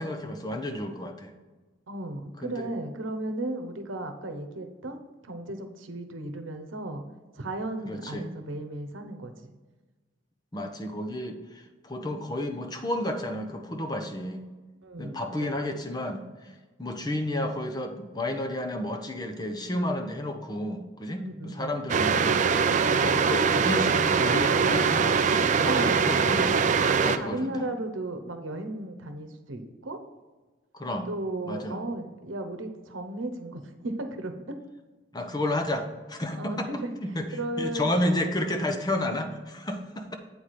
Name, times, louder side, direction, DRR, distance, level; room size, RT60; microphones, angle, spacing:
voice 1, 0.0-1.3 2.4-2.7 7.9-8.3 10.5-14.5 15.0-16.5 16.8-22.5 23.0-26.6 27.0-27.7 30.7-31.1 31.5-31.8 35.1-36.7 37.0-37.3 37.6-40.2, left 1 dB, 20° left, 5 dB, 0.7 m, -31 dB
voice 2, 1.9-7.0 7.4-9.5 14.8-15.7 21.2-21.8 25.6-26.3 27.1-30.0 31.1-34.6 36.4-36.9 37.3-38.3, right 1 dB, 90° right, 7 dB, 0.9 m, -35 dB
sound 1, 21.9-27.2, right 5 dB, 40° right, 0.4 m, -22 dB
8.5 x 4.8 x 4.2 m, 1.3 s
head